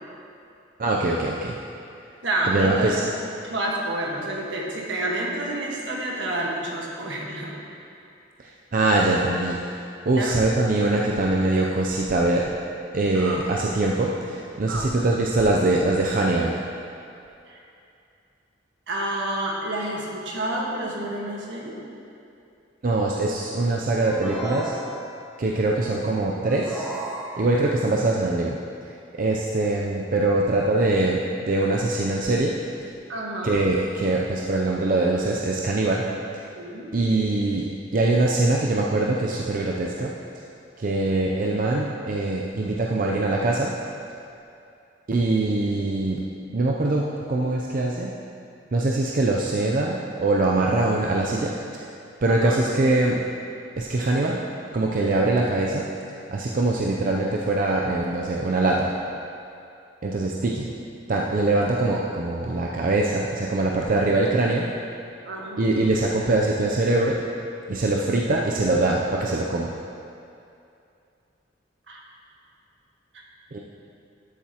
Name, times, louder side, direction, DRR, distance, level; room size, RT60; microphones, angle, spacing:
voice 1, 0.8-1.6 2.5-3.0 8.4-12.5 12.9-16.6 22.8-24.7 25.4-26.9 27.4-28.6 28.9-32.5 33.4-36.0 36.3-36.4 36.9-40.1 40.8-43.7 45.1-46.2 46.5-48.1 48.7-51.9 52.2-53.2 53.8-54.4 54.7-55.9 56.3-58.9 60.0-60.7 61.1-64.7 65.6-67.2 67.7-69.7 73.5-73.6, right 2 dB, 45° right, -2 dB, 0.5 m, -23 dB
voice 2, 2.2-2.9 3.4-7.5 10.1-10.4 13.1-13.4 14.7-15.0 17.5-17.6 18.9-21.7 33.1-33.7 36.5-36.9 52.2-52.6 65.2-65.7 71.9-72.0, right 1 dB, 75° right, -3 dB, 1.5 m, -29 dB
sound 1, 24.0-25.4 26.4-27.8, right 1 dB, 5° right, 0.9 m, -34 dB
12.0 x 7.1 x 2.9 m, 2.6 s
head